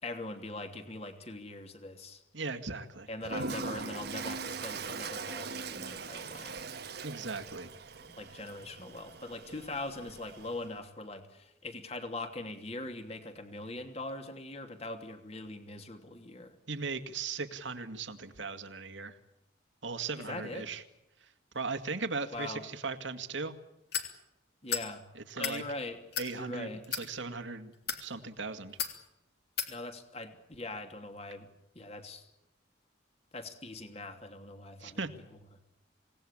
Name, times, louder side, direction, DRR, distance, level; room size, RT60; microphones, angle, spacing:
voice 1, 0.0-2.2 3.1-6.6 8.2-16.5 20.3-20.7 22.3-22.6 24.6-25.0 25.4-26.0 26.3-26.8 29.7-31.5 31.7-32.3 33.3-35.1, left 2 dB, 35° left, 6 dB, 3.0 m, -41 dB
voice 2, 2.3-3.1 7.0-7.7 16.7-19.2 19.8-20.8 21.2-21.3 21.5-23.5 25.1-25.6 26.2-27.7 28.0-28.8 34.8-35.1, right 4 dB, 75° right, 8 dB, 2.2 m, -38 dB
Toilet flush, 3.2-10.7, right 4 dB, 55° right, 1.3 m, -41 dB
sound 1, 23.9-24.1 24.7-24.9 25.3-25.6 26.1-26.3 26.8-27.1 27.7-28.0 28.8-29.0 29.6-29.7, left 8 dB, 55° left, 3.5 m, -33 dB
27.5 x 18.5 x 8.8 m, 0.89 s
head